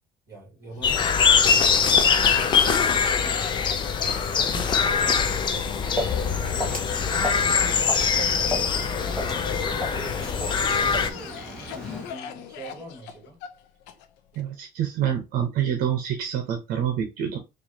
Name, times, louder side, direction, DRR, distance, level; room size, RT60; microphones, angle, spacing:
voice 1, 0.3-3.6 4.3-5.9 7.1-10.3 10.7-13.4, right 2 dB, 20° right, 2.4 m, -42 dB
Cough, 0.7-9.9 10.5-14.4, left 9 dB, 85° left, 0.7 m, -42 dB
sound 1, 0.8-11.1, left 6 dB, 25° left, 0.4 m, -22 dB
Walk footsteps, 5.6-12.2, left 1 dB, 5° left, 1.1 m, -35 dB
voice 2, 14.4-17.4, right 9 dB, 60° right, 0.9 m, -27 dB
4.6 x 2.6 x 2.8 m
cardioid pair, 160°, 17 cm